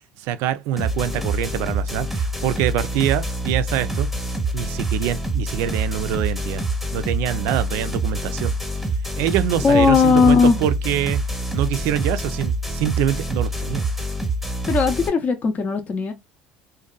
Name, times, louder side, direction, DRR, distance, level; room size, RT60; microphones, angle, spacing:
voice 1, 0.2-4.1 4.5-6.6 6.9-8.5 9.2-11.2 11.5-13.9, right 11 dB, 75° right, 0.3 m, -24 dB
sound 1, 0.8-15.1, right 1 dB, ahead, 0.8 m, -26 dB
voice 2, 9.6-10.6 14.7-16.1, left 5 dB, 40° left, 0.5 m, -17 dB
2.6 x 2.2 x 2.3 m
supercardioid pair, 85°, 4 cm